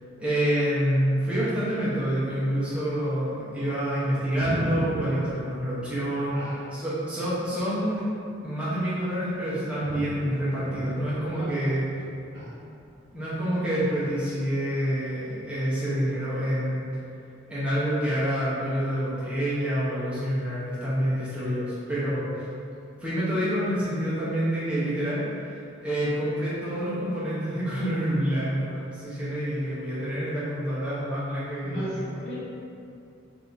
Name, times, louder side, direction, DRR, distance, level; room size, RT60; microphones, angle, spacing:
voice 1, 0.2-6.4 6.7-8.1 8.4-11.9 13.1-16.9 17.5-22.3 23.0-32.3, equal, 5° right, -11 dB, 0.8 m, -27 dB
Thunder, 1.1-15.0, equal, 70° right, 0.6 m, -41 dB
voice 2, 31.6-32.4, equal, 60° left, -9 dB, 1.2 m, -35 dB
3.4 x 2.7 x 3.9 m, 2.6 s
head